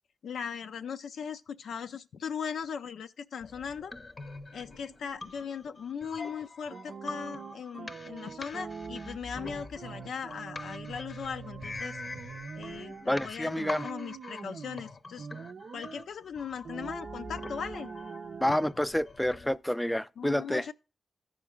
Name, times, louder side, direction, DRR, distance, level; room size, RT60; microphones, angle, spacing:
voice 1, 0.2-3.9 4.5-12.0 12.6-15.3 15.7-17.9 20.2-20.7, left 7 dB, 85° left, 0.5 m, -39 dB
sound 1, 3.4-19.6, left 3 dB, 45° left, 0.7 m, -45 dB
sound 2, 6.7-13.1 13.4-14.9 15.2-16.1 16.6-18.7, right 5 dB, 70° right, 0.5 m, -43 dB
voice 2, 13.1-13.9 18.4-20.7, left 1 dB, 10° left, 0.4 m, -29 dB
14.0 x 5.1 x 3.6 m
cardioid pair, 55°, 0 cm